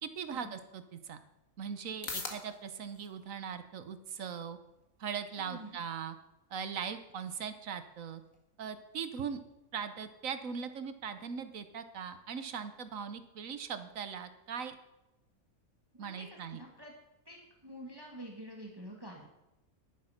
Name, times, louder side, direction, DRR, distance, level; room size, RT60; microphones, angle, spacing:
voice 1, 0.0-1.2 1.6-4.6 5.0-6.1 6.5-8.2 8.6-9.4 9.7-14.8 16.0-16.6, right 7 dB, 65° right, 10 dB, 1.3 m, -40 dB
sound 1, 1.5-17.5, left 4 dB, 65° left, 2.1 m, -53 dB
voice 2, 5.4-5.8 15.9-16.9 17.3-19.3, right 1 dB, 15° right, 0 dB, 1.9 m, -47 dB
11.0 x 10.5 x 5.8 m, 0.95 s
omnidirectional pair, 1.5 m